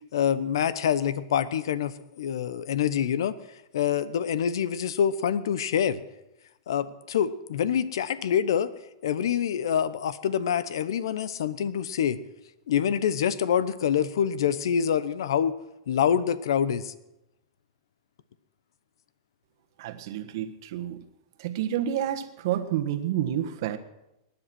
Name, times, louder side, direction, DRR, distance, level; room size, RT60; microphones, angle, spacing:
voice 1, 0.1-3.4 3.7-6.0 6.7-8.7 9.0-12.2 12.7-15.5 15.9-16.9, left 8 dB, 75° left, 16 dB, 0.9 m, -26 dB
voice 2, 19.8-21.0 21.4-23.8, right 11 dB, 60° right, 8 dB, 1.5 m, -29 dB
19.0 x 10.5 x 6.1 m, 0.91 s
hypercardioid pair, 125°, 2 cm